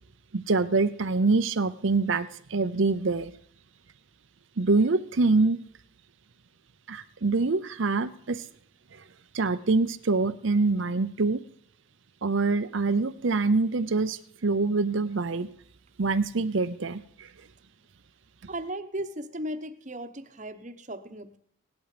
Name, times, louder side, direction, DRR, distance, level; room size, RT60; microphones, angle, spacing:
voice 1, 0.3-3.3 4.6-5.6 6.9-8.5 8.9-9.0 9.3-11.4 12.2-15.5 16.0-17.3, right 3 dB, 65° right, 11 dB, 0.7 m, -25 dB
voice 2, 18.5-21.4, right 1 dB, 35° right, 9 dB, 1.1 m, -36 dB
17.5 x 11.0 x 5.0 m, 0.64 s
head